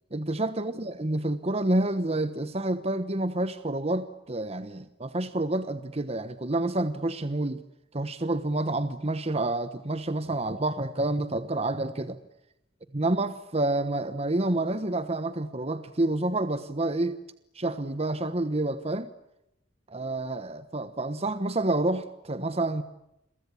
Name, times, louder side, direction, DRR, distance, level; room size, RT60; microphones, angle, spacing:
voice 1, 0.1-7.6 7.9-12.2 12.9-17.2 17.5-19.1 19.9-22.8, right 2 dB, 35° right, 1.2 m, -28 dB
30.0 x 23.5 x 8.5 m
head